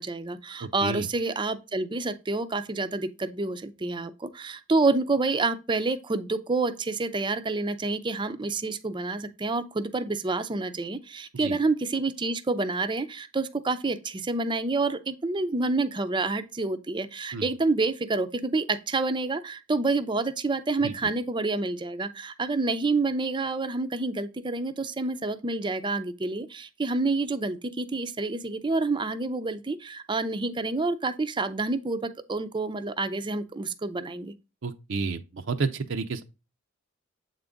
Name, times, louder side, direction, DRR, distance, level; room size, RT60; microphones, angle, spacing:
voice 1, 0.0-34.3, right 3 dB, 25° right, 0.5 m, -28 dB
voice 2, 0.6-1.1 11.3-11.6 17.3-17.5 20.8-21.1 34.6-36.2, right 4 dB, 70° right, 0.6 m, -31 dB
7.9 x 3.9 x 3.5 m
head